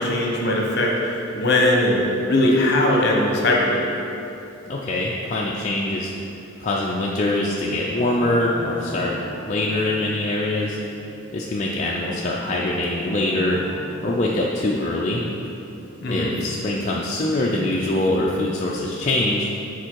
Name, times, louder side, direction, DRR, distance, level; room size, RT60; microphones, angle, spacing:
voice 1, 0.0-3.8 16.0-16.4, left 1 dB, 50° left, -1 dB, 1.0 m, -20 dB
voice 2, 4.7-6.1 6.6-10.8 11.3-13.6 14.0-15.3 16.1-19.5, left 1 dB, 35° left, -4 dB, 0.4 m, -23 dB
Guitar, 7.9-11.7 12.4-17.1, right 1 dB, 30° right, 1.2 m, -39 dB
7.1 x 4.3 x 4.6 m, 2.8 s
head